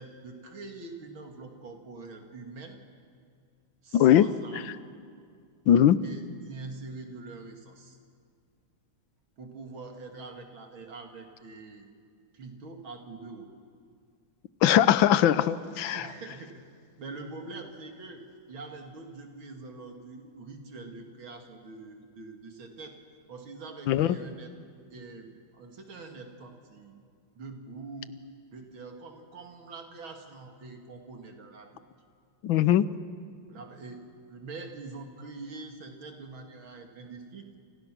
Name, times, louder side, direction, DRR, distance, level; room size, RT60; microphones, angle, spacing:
voice 1, 0.0-2.8 3.8-4.8 6.0-8.0 9.4-11.9 12.3-13.5 15.9-16.6 17.0-23.0 23.3-24.5 24.9-27.0 27.3-28.2 28.5-31.8 33.5-37.6, right 3 dB, 80° right, 3 dB, 3.1 m, -44 dB
voice 2, 3.9-4.3 5.7-6.0 14.6-16.0 23.9-24.2 32.4-32.9, left 11 dB, 75° left, 15 dB, 1.5 m, -20 dB
28.5 x 27.5 x 6.1 m, 2.2 s
omnidirectional pair, 2.2 m